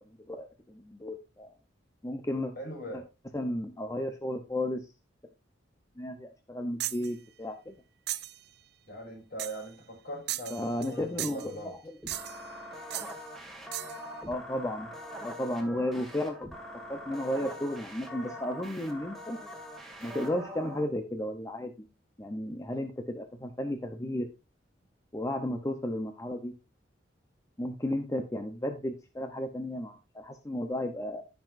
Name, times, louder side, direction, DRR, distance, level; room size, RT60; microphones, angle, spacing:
voice 1, 0.1-1.5 2.0-2.5 3.3-4.9 6.0-7.8 10.5-11.8 14.3-14.9 15.2-16.4 16.9-19.4 20.0-21.9 22.2-24.3 25.1-26.5 27.6-31.2, left 1 dB, 15° left, 0.8 m, -33 dB
voice 2, 2.6-3.1 8.9-11.8, right 1 dB, 55° left, 4.8 m, -41 dB
sound 1, 6.8-7.1 8.1-8.4 9.4-9.7 10.3-10.9 11.2-11.5 12.1-12.5 12.9-13.1 13.7-14.0, right 15 dB, 60° right, 0.5 m, -36 dB
sound 2, 12.0-20.8, equal, ahead, 2.0 m, -43 dB
15.0 x 5.9 x 2.6 m
head